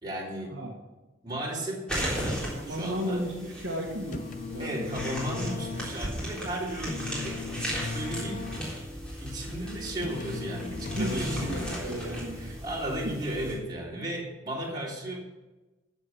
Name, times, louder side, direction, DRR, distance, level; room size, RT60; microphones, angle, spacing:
voice 1, 0.0-0.6 1.2-3.2 4.6-7.6 7.9-8.4 9.2-15.2, right 1 dB, 20° right, -4 dB, 3.3 m, -35 dB
sound 1, 1.9-13.5, equal, 5° left, 3.6 m, -36 dB
voice 2, 2.5-5.0 10.9-12.5, equal, 60° right, -1 dB, 1.7 m, -34 dB
sound 2, 4.1-12.1, left 3 dB, 40° left, 0.6 m, -38 dB
14.0 x 7.1 x 5.9 m, 1.1 s
head